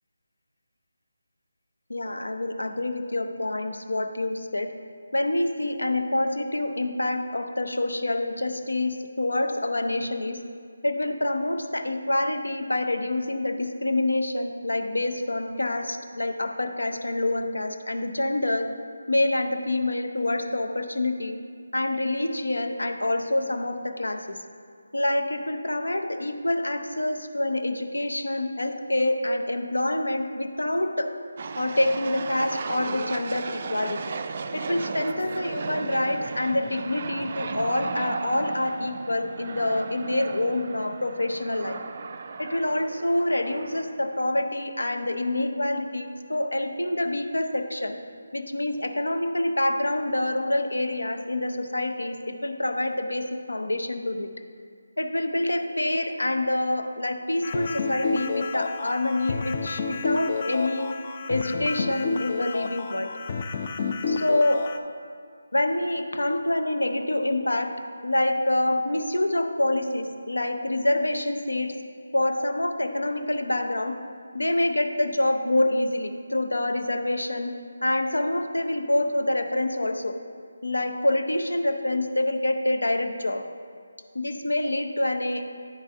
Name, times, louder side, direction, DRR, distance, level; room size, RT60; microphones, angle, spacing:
voice 1, 1.9-4.7 5.1-10.4 10.8-18.7 19.1-21.4 21.7-24.4 24.9-31.1 31.6-34.0 34.5-41.8 42.4-48.0 48.3-54.3 55.0-60.9 61.3-63.1 64.1-64.7 65.5-67.8 68.0-71.7 72.1-74.0 74.3-77.5 77.8-80.1 80.6-83.4 84.1-85.5, left 1 dB, 85° left, 5 dB, 0.8 m, -26 dB
sound 1, 31.4-44.5, right 4 dB, 40° right, 0.3 m, -36 dB
sound 2, 57.4-64.8, left 4 dB, 35° left, 0.4 m, -30 dB
10.5 x 4.1 x 3.5 m, 2.1 s
figure-of-eight pair, 160°, 0 cm